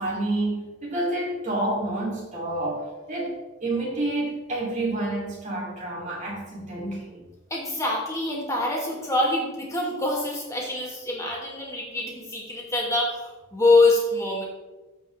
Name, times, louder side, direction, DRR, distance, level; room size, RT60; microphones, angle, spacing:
voice 1, 0.0-7.2, right 2 dB, 35° right, -4 dB, 2.9 m, -29 dB
voice 2, 7.5-14.4, left 2 dB, 15° left, -3 dB, 2.2 m, -24 dB
14.5 x 5.3 x 3.4 m, 1.1 s
head